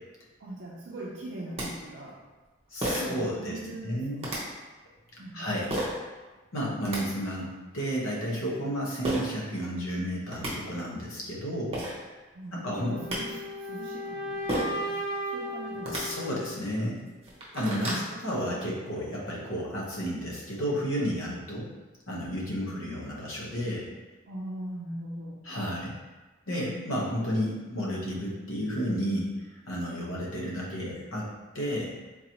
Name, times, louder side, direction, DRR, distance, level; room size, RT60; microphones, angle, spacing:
voice 1, 0.4-2.2 2.8-4.4 5.2-5.6 12.3-15.0 15.3-16.1 17.7-18.0 22.6-22.8 24.3-25.5, right 1 dB, 60° right, -6 dB, 0.5 m, -41 dB
sound 1, 1.2-1.3 1.6-1.7 2.8-3.2 4.2-4.4 5.7-6.0 6.6-7.0 9.0-9.2 10.0-10.1 10.3-10.5 11.4-11.5 11.7-11.9 12.8-13.2 14.5-14.8 15.7-16.0 16.7-16.8 17.1-18.0, right 1 dB, 30° right, 0.8 m, -31 dB
voice 2, 2.7-4.2 5.3-5.7 6.5-11.8 12.5-13.0 15.9-17.0 17.5-21.7 22.1-23.9 25.4-26.0 26.5-29.3 29.7-31.3 31.5-32.0, equal, 80° left, -4 dB, 0.9 m, -32 dB
sound 2, 12.8-16.8, equal, 10° left, 1.1 m, -36 dB
3.8 x 2.8 x 2.8 m, 1.2 s
head